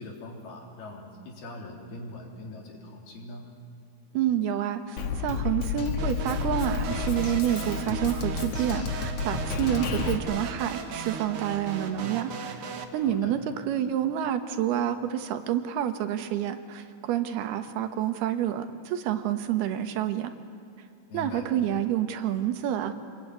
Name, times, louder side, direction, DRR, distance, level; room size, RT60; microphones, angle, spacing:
voice 1, 0.0-3.4 13.0-13.3 21.1-21.5, left 2 dB, 75° left, -1 dB, 5.6 m, -42 dB
voice 2, 4.1-20.3 21.1-22.9, right 10 dB, 80° right, 8 dB, 3.2 m, -28 dB
Drum kit, 5.0-10.1, left 6 dB, 50° left, 2.1 m, -31 dB
sound 1, 6.0-12.8, right 5 dB, 55° right, 1.7 m, -37 dB
28.0 x 21.0 x 9.6 m, 2.3 s
omnidirectional pair, 4.5 m